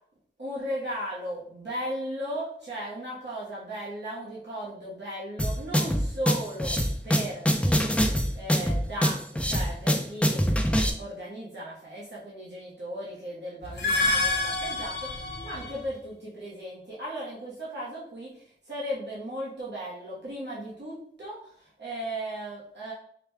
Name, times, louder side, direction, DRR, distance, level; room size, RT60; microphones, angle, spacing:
voice 1, 0.4-6.8 7.0-7.9 8.3-22.9, equal, 60° right, -7 dB, 1.1 m, -36 dB
sound 1, 5.4-10.9, equal, 5° left, 0.6 m, -24 dB
sound 2, 13.6-15.9, left 2 dB, 60° left, 0.8 m, -28 dB
4.8 x 2.3 x 3.2 m, 0.64 s
wide cardioid pair, 45°, 20 cm